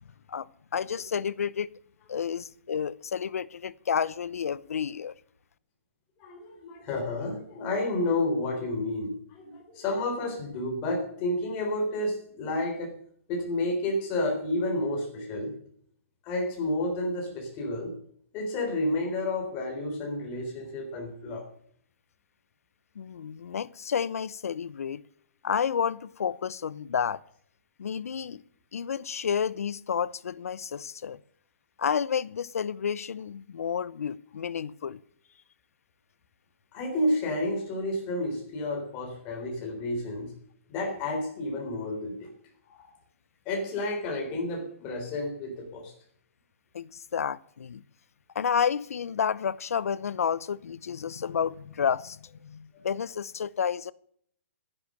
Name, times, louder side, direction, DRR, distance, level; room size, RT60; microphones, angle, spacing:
voice 1, 0.7-1.7 2.1-5.1 23.0-25.0 25.4-27.2 27.8-28.4 28.7-31.2 31.8-35.0 46.7-47.8 48.3-53.9, left 7 dB, 90° left, 0.8 m, -30 dB
voice 2, 6.2-13.0 13.3-15.5 16.3-18.0 18.3-21.5 36.7-40.3 40.7-42.3 42.7-42.9 43.5-45.9, left 1 dB, 20° left, 3.6 m, -30 dB
13.5 x 10.0 x 6.6 m
hypercardioid pair, 175°, 8 cm